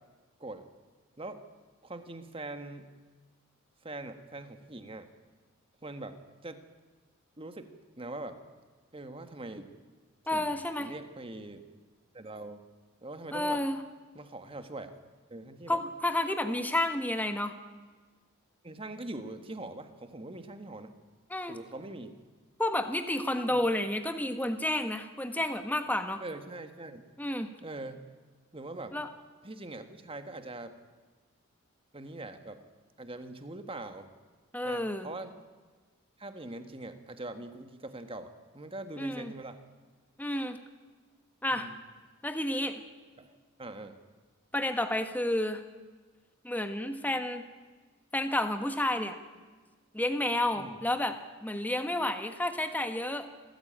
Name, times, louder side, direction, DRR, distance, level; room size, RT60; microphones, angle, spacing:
voice 1, 1.8-2.9 3.8-5.1 5.8-6.2 6.4-6.6 7.4-7.7 8.0-8.4 8.9-9.7 10.3-10.5 10.8-11.6 12.1-12.6 13.0-13.6 14.1-15.0 15.3-15.8 18.6-20.9 21.5-22.1 23.5-23.6 26.2-27.0 27.6-28.0 28.5-29.0 29.4-30.7 31.9-32.6 33.0-34.1 34.6-35.3 36.2-39.6 41.5-41.8 43.2-44.0 50.5-50.8, right 2 dB, 25° right, 8 dB, 1.5 m, -42 dB
voice 2, 10.3-10.9 13.3-13.8 15.7-17.6 21.3-21.5 22.6-26.2 27.2-27.5 28.9-29.1 34.5-35.1 39.0-39.3 40.2-40.6 41.4-41.7 42.2-42.8 44.5-45.6 46.4-47.4 48.1-49.2 49.9-53.3, left 1 dB, 10° left, 7 dB, 1.4 m, -30 dB
26.5 x 15.0 x 8.9 m, 1.4 s
head